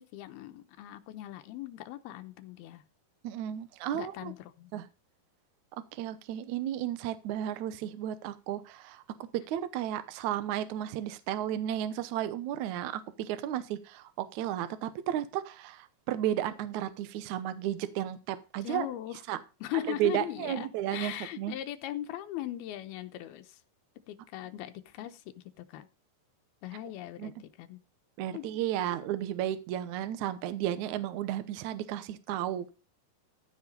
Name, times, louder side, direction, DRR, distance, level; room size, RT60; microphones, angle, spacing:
voice 1, 0.0-2.8 3.9-4.7 18.6-19.2 19.6-23.6 24.1-25.9 26.6-27.8 28.3-28.5 28.7-28.9, left 14 dB, 90° left, 9 dB, 2.8 m, -39 dB
voice 2, 3.2-4.3 4.7-4.8 5.9-9.0 9.3-18.9 19.3-19.4 19.8-21.6 27.2-27.3 28.2-32.7, right 12 dB, 75° right, 12 dB, 1.8 m, -33 dB
14.5 x 5.9 x 5.4 m, 0.30 s
omnidirectional pair, 4.4 m